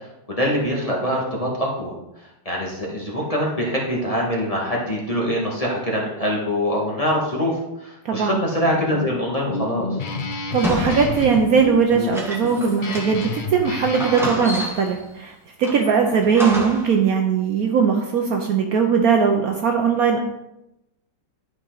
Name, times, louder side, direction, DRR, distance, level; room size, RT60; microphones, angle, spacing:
voice 1, 0.4-1.9 2.4-7.5 7.8-9.9, equal, 20° left, -3 dB, 1.7 m, -24 dB
voice 2, 8.0-8.4 10.5-20.2, right 6 dB, 65° right, 3 dB, 1.1 m, -20 dB
Guitar, 8.6-14.3, left 3 dB, 90° left, 0.4 m, -29 dB
sound 1, 10.6-13.4 13.6-13.7 13.9-15.0 15.6-17.0, equal, ahead, 1.2 m, -30 dB
11.0 x 5.3 x 3.9 m, 0.90 s
omnidirectional pair, 1.9 m